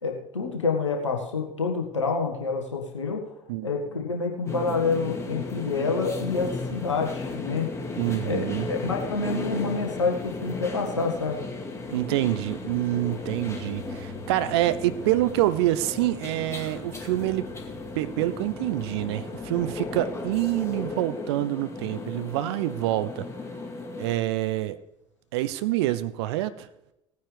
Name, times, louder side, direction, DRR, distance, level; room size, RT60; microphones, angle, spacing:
voice 1, 0.0-3.2 3.6-7.7 8.2-11.5, left 4 dB, 80° left, 1 dB, 1.8 m, -28 dB
sound 1, 4.5-24.2, left 3 dB, 20° left, 2.4 m, -35 dB
sound 2, 6.3-20.9, left 2 dB, 60° left, 4.1 m, -48 dB
voice 2, 8.0-8.7 11.9-17.5 17.9-23.3 24.0-24.8 25.3-26.7, right 15 dB, 60° right, 14 dB, 0.8 m, -26 dB
18.5 x 9.3 x 3.4 m, 0.88 s
figure-of-eight pair, 65°, 15 cm